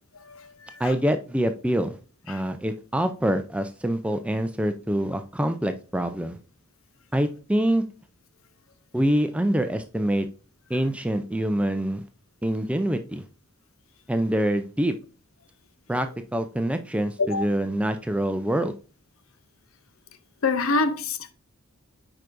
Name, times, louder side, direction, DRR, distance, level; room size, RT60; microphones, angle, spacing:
voice 1, 0.8-2.0 2.3-6.4 7.1-7.8 8.9-10.3 10.7-12.0 12.4-13.2 14.1-14.9 15.9-16.1 16.3-18.7, right 1 dB, 5° right, 0.4 m, -25 dB
voice 2, 20.4-21.3, left 3 dB, 70° left, 0.7 m, -25 dB
8.9 x 4.9 x 2.6 m
head